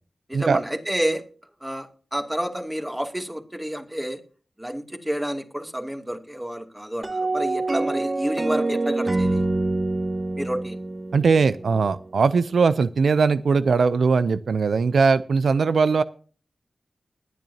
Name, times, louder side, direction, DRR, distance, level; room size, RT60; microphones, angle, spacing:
voice 1, 0.3-1.2 1.6-4.2 4.6-9.5 10.4-10.8, equal, 10° right, 5 dB, 2.4 m, -29 dB
sound 1, 7.0-12.2, right 2 dB, 35° right, 0.8 m, -26 dB
voice 2, 11.1-16.0, right 5 dB, 85° right, 15 dB, 0.5 m, -20 dB
20.5 x 9.3 x 2.8 m, 0.39 s
wide cardioid pair, 65°, 0 cm